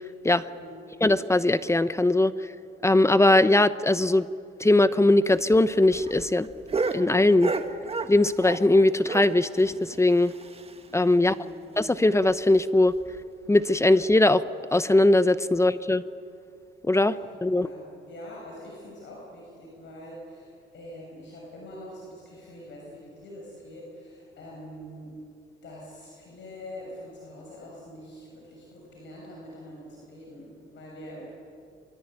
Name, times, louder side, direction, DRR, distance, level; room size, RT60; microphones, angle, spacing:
voice 1, 0.4-0.9 11.2-11.6 17.1-25.1 25.6-31.3, left 1 dB, 70° left, -2 dB, 6.8 m, -44 dB
voice 2, 1.0-2.3 2.8-4.3 4.6-6.5 6.9-7.5 8.1-10.3 10.9-11.3 11.8-12.9 13.5-14.4 14.7-16.0 16.9-17.2 17.4-17.7, left 2 dB, 15° left, 13 dB, 0.9 m, -20 dB
sound 1, 5.3-8.7 9.0-11.0 11.3-11.4 11.7-11.8 12.2-12.3 12.9-13.2 14.0-14.1, right 4 dB, 30° right, 1.8 m, -33 dB
24.0 x 23.0 x 9.2 m, 2.5 s
cardioid pair, 90°, 20 cm